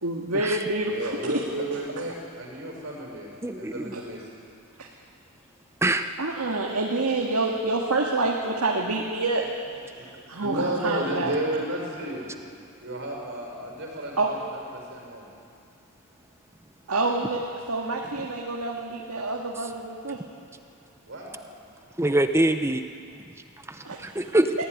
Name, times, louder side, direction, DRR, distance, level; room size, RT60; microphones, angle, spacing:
voice 1, 0.0-1.3 3.9-4.0 4.8-4.9 6.2-9.4 10.3-11.3 14.2-14.3 16.9-17.4 17.7-20.2 23.8-24.0, right 2 dB, 90° right, -1 dB, 2.0 m, -27 dB
voice 2, 0.9-3.3 3.6-4.3 9.9-10.1 10.4-12.3 12.8-15.3 21.1-21.3, right 1 dB, 55° right, 0 dB, 5.5 m, -32 dB
voice 3, 3.4-3.9 5.8-6.1 22.0-22.8 23.7-24.5, right 1 dB, 10° right, 8 dB, 0.7 m, -24 dB
22.0 x 16.0 x 9.5 m, 2.4 s
head